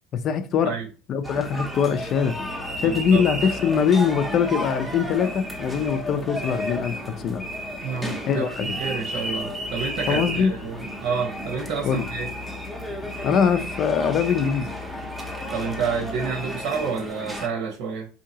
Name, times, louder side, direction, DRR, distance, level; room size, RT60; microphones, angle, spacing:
voice 1, 0.1-0.7 1.1-2.4 2.8-7.5 8.3-8.7 10.1-10.5 11.8-12.1 13.2-14.7, left 7 dB, 45° left, 0.5 m, -22 dB
sound 1, 1.2-17.5, equal, 5° right, 0.7 m, -32 dB
voice 2, 2.8-3.2 7.8-8.4 8.8-12.3 15.5-18.1, right 5 dB, 75° right, 1.0 m, -29 dB
3.8 x 2.8 x 2.8 m
cardioid pair, 135°, 0 cm